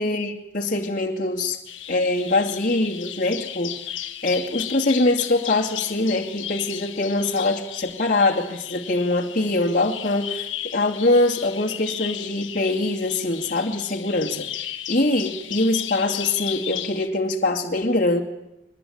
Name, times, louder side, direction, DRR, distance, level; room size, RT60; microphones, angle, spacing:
voice 1, 0.0-1.6 1.9-3.7 4.2-18.2, left 2 dB, 45° left, 0 dB, 2.5 m, -23 dB
Bird vocalization bird call bird song, 1.7-17.1, left 11 dB, 90° left, 1.4 m, -35 dB
22.5 x 21.0 x 8.9 m, 0.90 s
head